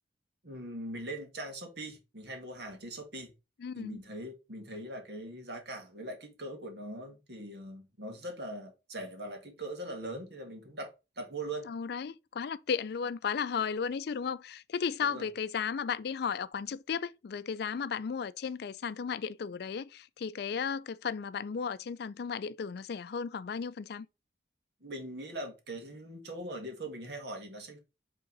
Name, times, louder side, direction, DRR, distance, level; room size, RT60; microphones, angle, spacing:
voice 1, 0.4-3.3 3.7-10.9 11.2-11.7 15.1-15.3 24.8-27.8, right 1 dB, 65° right, 1.8 m, -41 dB
voice 2, 3.6-4.0 11.6-24.1, left 6 dB, 60° left, 0.4 m, -35 dB
5.7 x 3.7 x 5.3 m
head